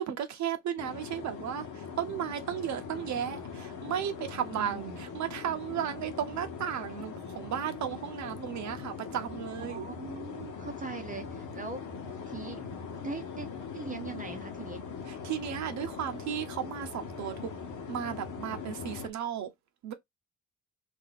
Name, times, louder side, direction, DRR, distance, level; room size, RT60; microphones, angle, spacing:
voice 1, 0.0-9.8 15.1-17.4 17.9-19.5 19.8-19.9, right 9 dB, 70° right, 0.7 m, -34 dB
sound 1, 0.8-19.1, left 6 dB, 80° left, 1.2 m, -41 dB
voice 2, 4.5-5.0 9.6-11.8 12.3-12.7 13.0-13.5 13.7-14.8, right 4 dB, 25° right, 0.7 m, -41 dB
2.7 x 2.6 x 3.9 m
cardioid pair, 90°, 30 cm